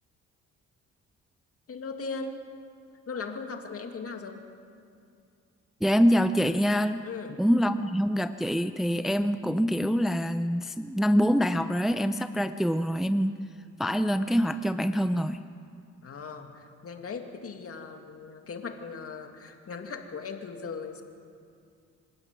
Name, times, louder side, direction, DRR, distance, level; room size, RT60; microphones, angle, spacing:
voice 1, 1.7-2.5 3.1-4.5 7.0-7.4 16.0-21.0, left 4 dB, 50° left, 4 dB, 2.4 m, -38 dB
voice 2, 5.8-7.0 7.4-13.4 13.8-15.4, equal, ahead, 10 dB, 0.6 m, -25 dB
26.5 x 12.0 x 9.3 m, 2.3 s
cardioid pair, 90°, 30 cm